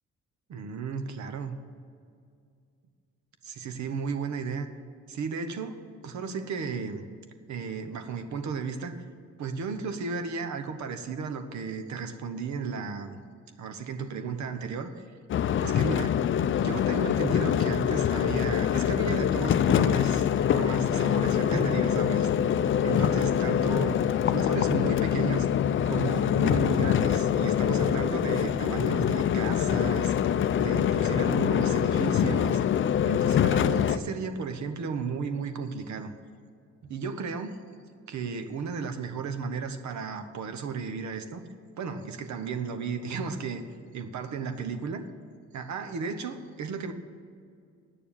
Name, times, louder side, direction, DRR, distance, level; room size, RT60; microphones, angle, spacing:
voice 1, 0.5-1.5 3.4-4.7 5.1-5.8 6.0-7.0 7.5-9.0 9.4-13.2 13.6-15.0 15.6-16.1 16.6-22.3 22.8-24.0 24.3-25.5 25.9-30.1 30.6-32.6 33.1-36.1 36.8-37.6 38.1-41.4 41.8-43.6 43.9-45.0 45.5-46.9, right 5 dB, 70° right, 7 dB, 1.0 m, -34 dB
sound 1, 15.3-34.0, left 9 dB, 40° left, 0.4 m, -25 dB
9.0 x 6.9 x 8.7 m, 2.2 s
cardioid pair, 90°, 30 cm